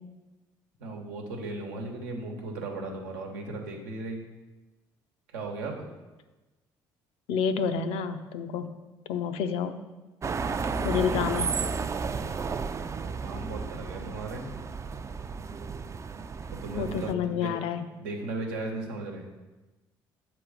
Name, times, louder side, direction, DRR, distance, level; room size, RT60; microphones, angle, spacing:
voice 1, 0.8-4.2 5.3-5.9 12.8-14.5 16.5-17.5 18.0-19.3, right 2 dB, 90° right, 1 dB, 1.0 m, -36 dB
voice 2, 7.3-8.7 9.1-9.8 10.8-11.5 16.8-17.8, left 7 dB, 75° left, 9 dB, 0.5 m, -29 dB
sound 1, 10.2-17.1, right 5 dB, 30° right, 0.4 m, -33 dB
7.2 x 3.2 x 4.9 m, 1.2 s
hypercardioid pair, 60°, 10 cm